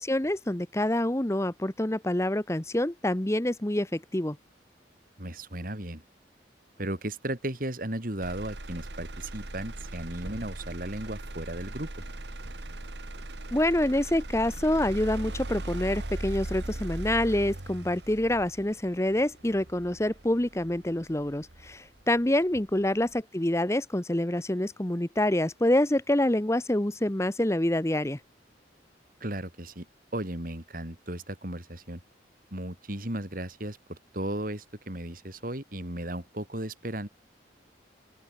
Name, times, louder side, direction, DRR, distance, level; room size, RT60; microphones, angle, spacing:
voice 1, 0.0-4.4 13.5-28.2, left 1 dB, 15° left, 0.9 m, -27 dB
voice 2, 5.2-6.0 6.8-12.0 29.2-29.9 30.1-32.0 32.5-37.1, right 1 dB, 50° right, 3.6 m, -35 dB
Motor vehicle (road), 8.2-22.2 22.7-23.2, right 1 dB, 70° right, 1.9 m, -39 dB
open air
head